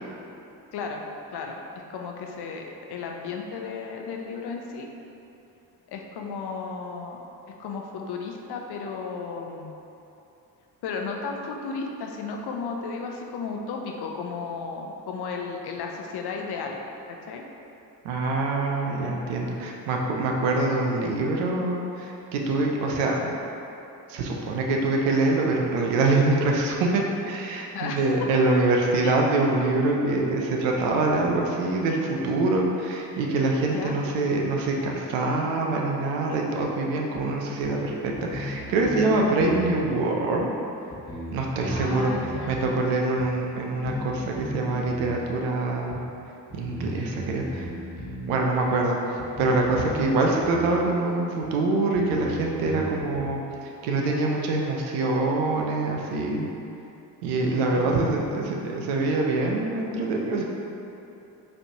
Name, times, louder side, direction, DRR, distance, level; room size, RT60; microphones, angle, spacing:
voice 1, 0.7-1.0 1.3-1.6 1.9-4.9 5.9-7.2 7.6-9.7 10.8-16.8 17.1-17.4 27.7-28.0 29.0-29.2 33.7-34.0 41.7-42.6 57.4-58.2, left 5 dB, 55° left, 1 dB, 0.6 m, -34 dB
voice 2, 18.0-23.3 24.1-40.5 41.3-42.1 42.5-46.0 46.5-47.7 48.3-49.0 49.4-56.5 57.2-60.4, right 2 dB, 80° right, 0 dB, 0.6 m, -25 dB
sound 1, 37.1-37.2 37.6-37.7 38.1-39.1 39.4-39.7 40.4-40.5 40.9-42.7 43.2-43.3 43.8-44.1 44.4-45.2 45.9-46.0 46.5-48.3 48.6-48.7 49.2-50.1 50.4-50.7 51.4-51.5 51.9-53.3, equal, 85° left, 1.3 m, -36 dB
4.0 x 3.3 x 2.8 m, 2.8 s
hypercardioid pair, 40°, 46 cm